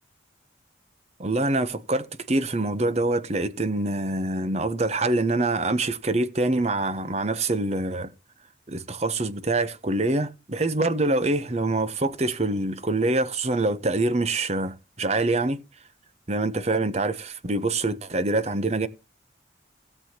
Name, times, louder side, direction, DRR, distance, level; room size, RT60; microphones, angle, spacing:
voice 1, 1.2-8.1 8.7-15.6 16.3-18.9, right 2 dB, 35° right, 0.9 m, -25 dB
16.5 x 7.8 x 2.9 m
head